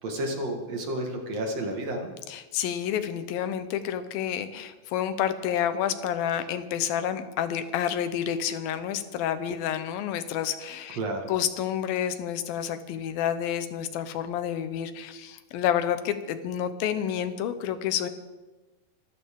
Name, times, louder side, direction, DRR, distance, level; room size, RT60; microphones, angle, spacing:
voice 1, 0.0-2.1 11.0-11.3, right 1 dB, 55° right, 2 dB, 2.5 m, -31 dB
voice 2, 2.3-11.0 11.3-18.1, left 9 dB, 90° left, 11 dB, 2.7 m, -29 dB
25.0 x 13.0 x 3.7 m, 1.2 s
omnidirectional pair, 4.1 m